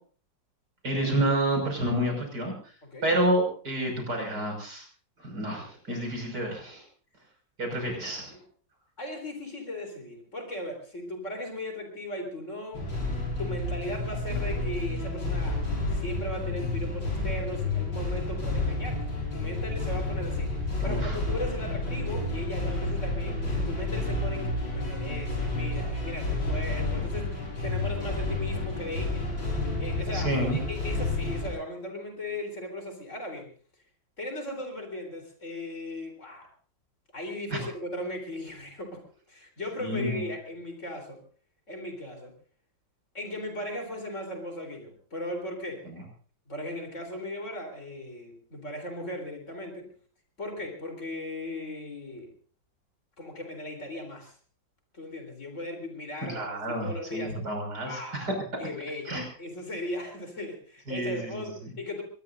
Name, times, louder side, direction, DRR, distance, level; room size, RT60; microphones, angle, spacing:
voice 1, 0.8-2.5 3.0-4.8 5.2-6.8 7.6-8.3 20.8-21.2 30.1-30.6 37.5-37.7 39.8-40.2 45.9-46.0 56.3-58.3 59.0-59.2 60.9-61.3, right 1 dB, 55° right, 2 dB, 6.5 m, -29 dB
voice 2, 9.0-12.9 13.4-15.6 15.9-19.1 19.3-20.5 20.8-23.4 23.7-29.2 29.8-33.5 34.2-36.5 37.1-41.2 41.7-42.3 43.1-45.9 46.5-49.9 50.4-52.3 53.2-54.3 54.9-57.5 57.8-58.3 58.6-62.0, left 1 dB, 40° left, 4 dB, 4.1 m, -37 dB
sound 1, 12.7-31.5, left 2 dB, 80° left, 7.8 m, -30 dB
22.5 x 20.0 x 2.7 m, 0.42 s
omnidirectional pair, 2.1 m